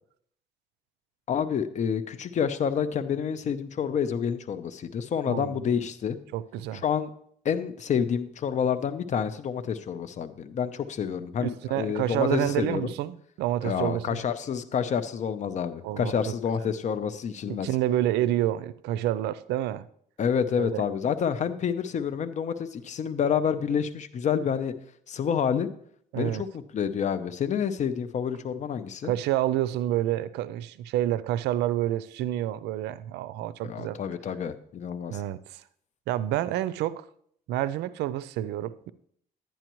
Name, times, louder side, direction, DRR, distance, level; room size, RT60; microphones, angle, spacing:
voice 1, 1.3-6.2 6.8-7.1 7.4-12.9 13.6-17.7 20.2-24.7 25.1-25.7 26.1-29.1 33.6-35.2, left 7 dB, 45° left, 0.7 m, -28 dB
voice 2, 5.3-5.7 6.3-6.8 11.4-14.2 15.8-16.3 16.6-16.8 17.6-19.9 20.6-20.8 26.1-26.4 29.0-34.0 35.1-35.6 36.1-37.1 37.5-38.9, right 13 dB, 85° right, 0.5 m, -28 dB
10.5 x 10.0 x 3.1 m
cardioid pair, 110°, 17 cm